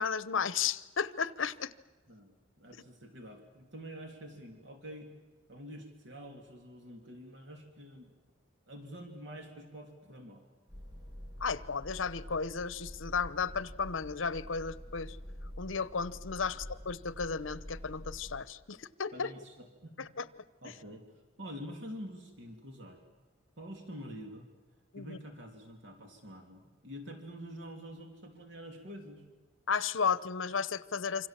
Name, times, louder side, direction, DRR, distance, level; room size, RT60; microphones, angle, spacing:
voice 1, 0.0-1.7 11.4-15.2 15.6-19.3 20.0-20.2 24.9-25.2 29.7-31.3, left 5 dB, 75° left, 17 dB, 0.9 m, -34 dB
voice 2, 2.1-5.1 5.5-8.1 8.7-10.4 16.4-16.6 19.1-20.1 20.6-21.1 21.4-23.0 23.6-24.5 25.0-29.2, equal, 60° right, 3 dB, 3.0 m, -47 dB
sound 1, 10.7-18.4, equal, 20° right, 6.9 m, -47 dB
27.5 x 25.5 x 7.5 m, 1.2 s
head